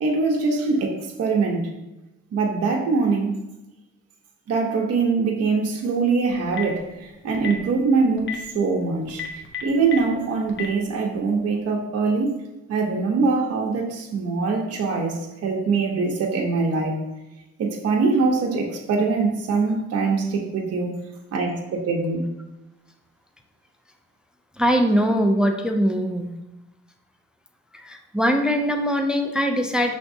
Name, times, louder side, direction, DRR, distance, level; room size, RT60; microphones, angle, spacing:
voice 1, 0.0-1.7 2.3-3.3 4.5-9.2 9.6-12.4 12.7-17.0 17.6-20.9 21.3-22.3, right 4 dB, 55° right, 0 dB, 0.7 m, -23 dB
Telephone, 6.3-6.8 7.3-7.6 8.2-8.4 9.1-10.0 10.5-10.7, left 8 dB, 40° left, 0.7 m, -30 dB
voice 2, 24.6-26.3 27.7-29.9, equal, 5° right, 4 dB, 0.3 m, -21 dB
5.0 x 3.4 x 2.6 m, 1.0 s
cardioid pair, 90°, 30 cm